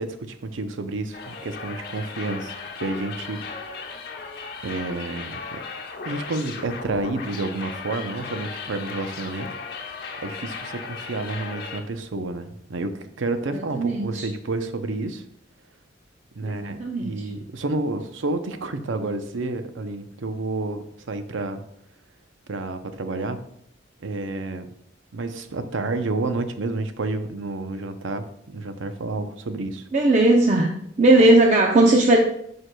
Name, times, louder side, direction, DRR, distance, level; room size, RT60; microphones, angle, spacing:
voice 1, 0.0-3.8 4.6-5.6 6.1-9.8 10.2-15.2 16.3-21.6 22.5-23.4 24.0-24.7 25.1-29.9, right 2 dB, 85° right, 8 dB, 0.6 m, -30 dB
sound 1, 1.1-11.8, left 5 dB, 55° left, 0.9 m, -36 dB
voice 2, 13.5-14.3 16.4-17.2 29.9-30.7 31.0-32.2, right 1 dB, 40° right, 1 dB, 0.6 m, -18 dB
11.0 x 4.7 x 2.2 m, 0.72 s
head